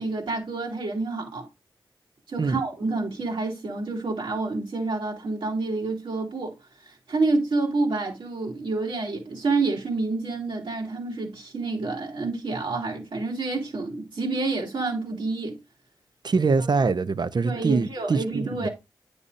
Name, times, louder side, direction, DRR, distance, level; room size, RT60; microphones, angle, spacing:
voice 1, 0.0-1.5 2.3-6.5 7.1-15.6 16.6-16.7 17.4-18.7, right 3 dB, 80° right, 3.0 m, -28 dB
voice 2, 16.2-18.7, right 4 dB, 55° right, 0.7 m, -24 dB
9.7 x 6.9 x 2.6 m
cardioid pair, 50°, 9 cm